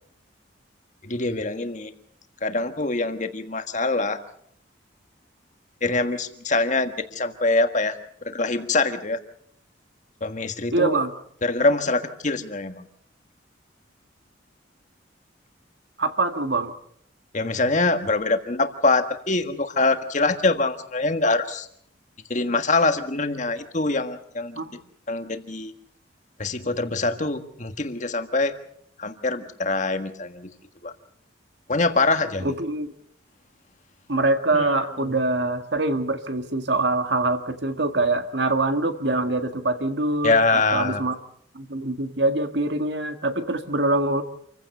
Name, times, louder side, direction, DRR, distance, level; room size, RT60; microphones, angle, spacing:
voice 1, 1.0-1.9 2.4-4.2 5.8-8.0 8.2-9.2 10.2-11.0 11.4-12.9 17.3-21.7 22.3-24.6 25.1-25.7 26.4-28.5 29.0-30.5 30.8-30.9 31.7-32.5 34.5-35.1 40.2-41.0, left 3 dB, 40° left, 8 dB, 1.6 m, -24 dB
voice 2, 10.7-11.1 16.0-16.7 24.6-24.7 32.4-32.9 34.1-41.2 41.5-44.2, right 2 dB, 60° right, 8 dB, 1.8 m, -24 dB
27.5 x 15.5 x 6.7 m, 0.67 s
head